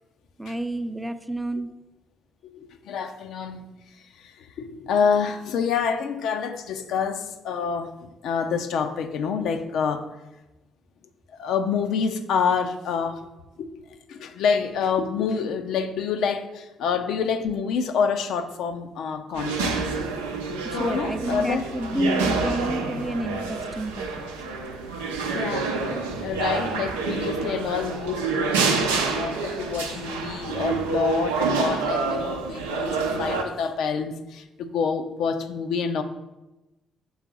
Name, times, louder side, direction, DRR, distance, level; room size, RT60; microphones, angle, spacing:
voice 1, 0.4-1.7 20.6-24.1, right 1 dB, 10° right, 10 dB, 0.5 m, -29 dB
voice 2, 2.5-3.6 4.2-10.1 11.3-13.3 13.6-13.8 14.1-19.8 20.7-21.6 25.3-26.0 26.2-36.0, left 6 dB, 65° left, 8 dB, 0.4 m, -27 dB
sound 1, 19.3-33.4, right 4 dB, 85° right, 0.6 m, -27 dB
5.5 x 3.7 x 5.9 m, 1.0 s
hypercardioid pair, 45°, 0 cm